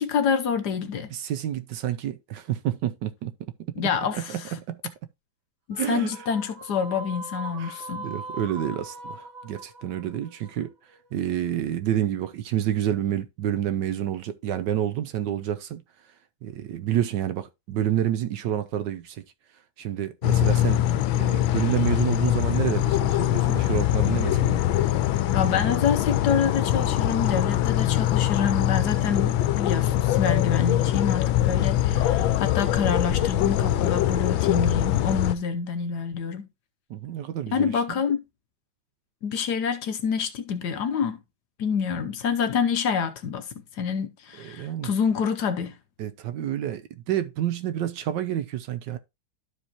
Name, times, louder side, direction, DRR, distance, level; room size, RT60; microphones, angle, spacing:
voice 1, 0.0-1.1 3.8-4.5 5.7-8.1 25.3-36.5 37.5-38.2 39.2-41.2 41.6-45.8, left 6 dB, 65° left, 1.2 m, -27 dB
voice 2, 1.1-3.3 3.7-3.8 4.1-4.9 5.8-6.1 7.6-10.7 11.1-15.8 16.4-19.2 19.8-20.8 21.1-24.6 36.9-38.0 44.4-44.9 46.0-49.0, right 11 dB, 70° right, 1.1 m, -29 dB
sound 1, 5.7-11.1, right 2 dB, 55° right, 2.5 m, -40 dB
sound 2, 20.2-35.4, left 13 dB, 80° left, 1.4 m, -23 dB
12.5 x 4.7 x 2.9 m
omnidirectional pair, 2.2 m